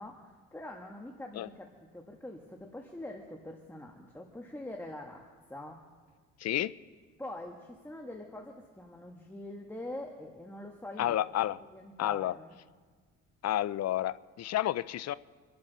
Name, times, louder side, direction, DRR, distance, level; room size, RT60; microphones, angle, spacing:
voice 1, 0.0-5.8 7.2-11.2 11.7-12.5, left 1 dB, 5° left, 2 dB, 1.5 m, -44 dB
voice 2, 6.4-6.7 11.0-11.6 12.0-12.3 13.4-15.1, left 13 dB, 60° left, 18 dB, 0.5 m, -30 dB
27.5 x 11.5 x 4.1 m, 1.5 s
cardioid pair, 90°, 30 cm